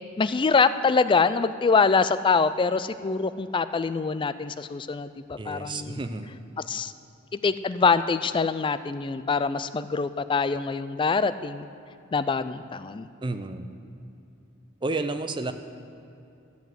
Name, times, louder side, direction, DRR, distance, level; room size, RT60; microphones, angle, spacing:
voice 1, 0.2-6.0 6.7-6.9 7.3-11.7 12.1-13.1, left 4 dB, 25° left, 13 dB, 0.3 m, -24 dB
voice 2, 5.4-6.4 13.2-13.7 14.8-15.5, right 2 dB, 25° right, 8 dB, 0.6 m, -31 dB
12.5 x 7.2 x 7.8 m, 2.6 s
head